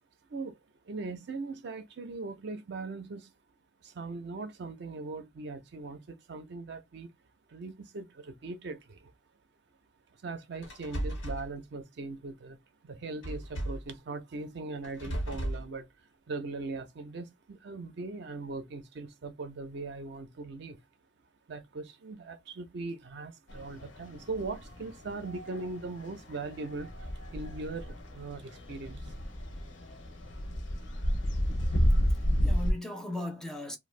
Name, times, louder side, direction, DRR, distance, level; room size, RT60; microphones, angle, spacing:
voice 1, 0.8-3.3 3.8-7.1 7.5-9.1 10.1-12.6 12.8-20.8 21.5-29.1, right 3 dB, 60° right, 0.5 m, -40 dB
sound 1, 10.6-11.5 13.2-13.9 14.8-15.7, right 1 dB, 85° left, 1.1 m, -35 dB
sound 2, 23.5-32.7, equal, 70° left, 0.6 m, -32 dB
voice 2, 31.9-33.8, left 1 dB, 5° left, 0.4 m, -38 dB
2.5 x 2.2 x 3.1 m
head